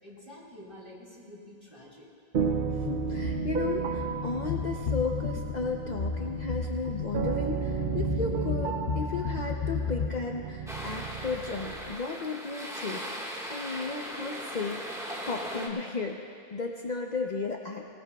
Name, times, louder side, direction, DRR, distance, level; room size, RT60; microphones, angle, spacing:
voice 1, 0.0-2.1, left 1 dB, 25° right, -6 dB, 3.6 m, -48 dB
sound 1, 2.3-11.9, right 6 dB, 60° right, 0.8 m, -33 dB
sound 2, 2.7-10.1, left 6 dB, 85° left, 1.0 m, -34 dB
voice 2, 2.7-13.1 13.5-17.8, left 4 dB, 50° left, 1 dB, 0.8 m, -34 dB
sound 3, 10.7-15.7, equal, 5° right, 1.5 m, -38 dB
19.5 x 18.5 x 2.3 m, 2.2 s
omnidirectional pair, 1.0 m